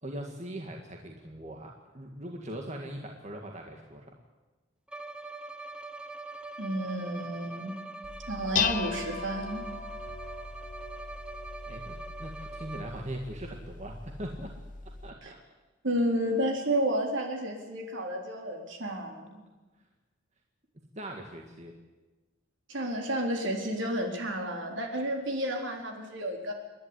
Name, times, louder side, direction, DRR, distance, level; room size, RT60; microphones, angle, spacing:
voice 1, 0.0-4.2 11.7-14.6 15.0-15.4 20.9-21.7, right 1 dB, 35° right, 1 dB, 1.9 m, -40 dB
Bowed string instrument, 4.9-13.2, right 3 dB, 5° right, 0.9 m, -43 dB
voice 2, 6.6-7.7 8.3-9.6 15.2-15.3 15.8-19.4 22.7-26.5, right 1 dB, 65° right, 2 dB, 4.1 m, -31 dB
Dishes pots and pans, 8.0-15.1, left 7 dB, 40° left, 0.9 m, -37 dB
28.5 x 11.5 x 9.9 m, 1.2 s
head